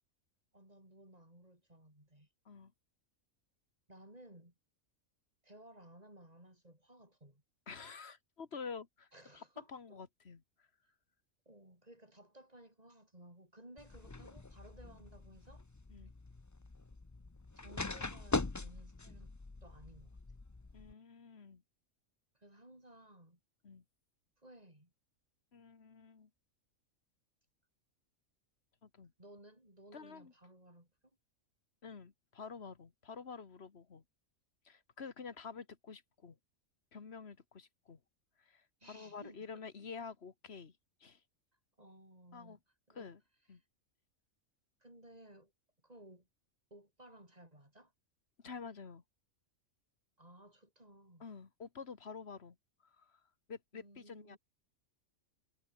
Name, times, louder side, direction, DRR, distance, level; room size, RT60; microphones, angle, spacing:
voice 1, 0.5-2.3 3.9-4.5 5.4-7.4 9.1-10.0 10.8-10.9 11.5-15.6 17.6-19.4 19.6-20.2 22.3-23.4 24.4-24.9 29.2-30.9 38.8-39.6 41.8-42.6 42.9-43.1 44.8-45.5 45.8-46.3 46.7-47.9 50.2-51.3 53.7-54.4, right 1 dB, 30° right, 7.5 m, -58 dB
voice 2, 7.7-9.1 9.3-10.7 15.9-16.1 20.7-21.6 23.6-23.8 25.5-26.3 28.8-29.1 29.9-30.3 31.8-34.0 34.6-36.4 36.9-38.0 38.4-40.7 41.0-41.2 42.3-42.6 42.9-43.2 43.5-43.6 48.4-49.0 51.2-52.6 52.8-53.2 53.5-54.4, left 5 dB, 50° left, 1.9 m, -49 dB
sound 1, 13.8-20.9, left 3 dB, 20° left, 0.6 m, -42 dB
omnidirectional pair, 1.4 m